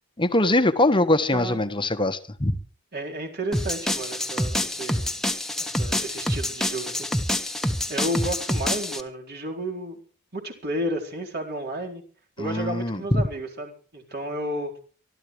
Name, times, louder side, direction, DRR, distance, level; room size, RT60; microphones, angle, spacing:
voice 1, 0.2-2.6 12.4-13.2, left 1 dB, 20° left, 1.2 m, -22 dB
voice 2, 2.9-5.1 5.6-7.6 7.9-10.0 10.3-12.0 12.4-14.7, right 1 dB, 45° right, 4.1 m, -32 dB
sound 1, 3.5-9.0, left 1 dB, ahead, 1.4 m, -27 dB
24.5 x 13.5 x 3.2 m
head